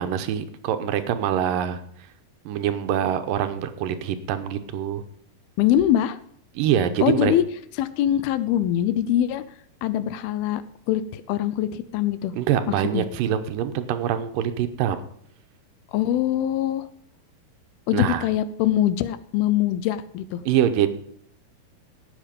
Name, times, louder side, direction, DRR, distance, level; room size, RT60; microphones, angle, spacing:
voice 1, 0.0-1.8 2.5-5.0 6.6-7.3 12.4-15.0 17.9-18.3 20.5-20.9, right 10 dB, 75° right, 9 dB, 2.2 m, -24 dB
voice 2, 5.6-6.2 7.0-7.4 7.8-9.4 9.8-10.6 10.9-12.3 12.9-13.0 15.9-16.9 17.9-20.4, left 11 dB, 80° left, 14 dB, 2.4 m, -23 dB
16.5 x 6.4 x 5.1 m, 0.67 s
omnidirectional pair, 4.5 m